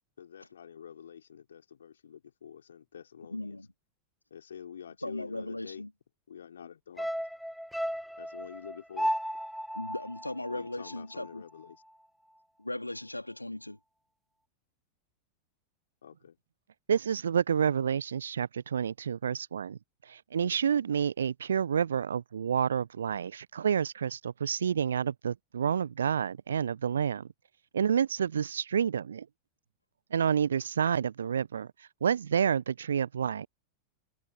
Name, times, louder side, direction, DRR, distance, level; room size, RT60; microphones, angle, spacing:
voice 1, 0.2-3.6 4.3-5.8 6.3-7.1 8.2-9.2 10.5-11.8 16.0-16.4, left 8 dB, 65° left, 4.3 m, -47 dB
voice 2, 3.3-3.7 5.0-5.9 9.7-11.4 12.6-13.8, left 1 dB, 85° left, 2.3 m, -37 dB
sound 1, 7.0-11.4 11.7-11.8, equal, ahead, 0.4 m, -35 dB
voice 3, 16.9-27.3 27.7-29.3 30.1-33.5, right 8 dB, 70° right, 0.8 m, -29 dB
figure-of-eight pair, 90°, 0 cm